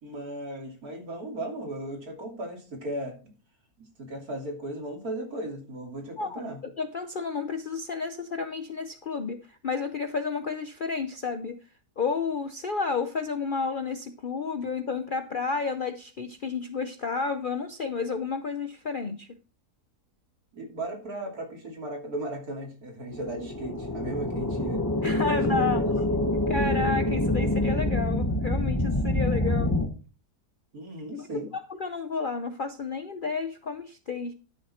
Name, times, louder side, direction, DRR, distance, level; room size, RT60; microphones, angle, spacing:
voice 1, 0.0-3.2 3.8-6.6 20.5-24.8 25.3-25.9 30.7-31.5, right 1 dB, 70° right, 1 dB, 3.3 m, -36 dB
voice 2, 6.2-11.6 12.0-19.3 25.0-25.8 26.5-29.8 31.1-31.5 31.8-34.3, left 4 dB, 50° left, 9 dB, 0.6 m, -31 dB
sound 1, 23.1-29.9, left 1 dB, 15° left, 0.9 m, -26 dB
11.5 x 6.9 x 4.3 m, 0.36 s
omnidirectional pair, 1.6 m